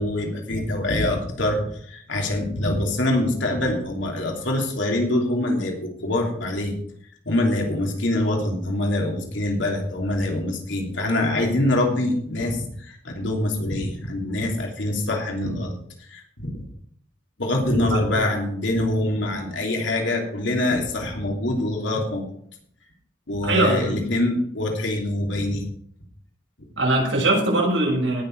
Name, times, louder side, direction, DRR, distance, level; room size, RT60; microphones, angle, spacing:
voice 1, 0.0-6.7 7.2-16.6 17.4-22.3 23.3-25.6, left 1 dB, 80° left, 1 dB, 3.2 m, -24 dB
voice 2, 17.9-18.3 23.4-23.9 26.8-28.2, right 2 dB, 85° right, -1 dB, 6.2 m, -21 dB
18.0 x 6.8 x 4.8 m, 0.64 s
head